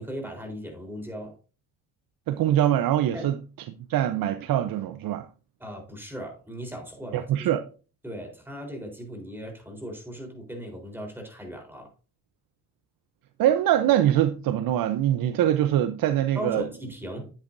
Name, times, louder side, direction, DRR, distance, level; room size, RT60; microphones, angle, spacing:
voice 1, 0.0-1.4 3.1-3.3 5.6-7.5 8.0-11.9 16.3-17.3, equal, 5° right, 3.8 m, -38 dB
voice 2, 2.3-3.4 3.9-5.3 7.1-7.6 13.4-16.7, right 11 dB, 65° right, 0.8 m, -23 dB
10.0 x 8.2 x 2.6 m
cardioid pair, 85°, 37 cm